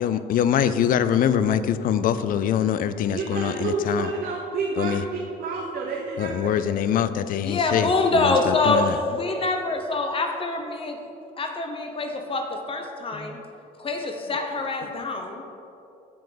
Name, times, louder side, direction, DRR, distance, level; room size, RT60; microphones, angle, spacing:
voice 1, 0.0-4.1 4.8-5.0 6.2-7.9 8.2-8.9, left 9 dB, 55° left, 13 dB, 0.4 m, -23 dB
voice 2, 3.1-6.4, right 3 dB, 60° right, -2 dB, 1.0 m, -29 dB
voice 3, 7.4-11.0 11.4-13.4 13.8-15.4, left 3 dB, 30° left, 4 dB, 0.7 m, -25 dB
7.5 x 7.2 x 3.9 m, 2.7 s
cardioid pair, 110°, 17 cm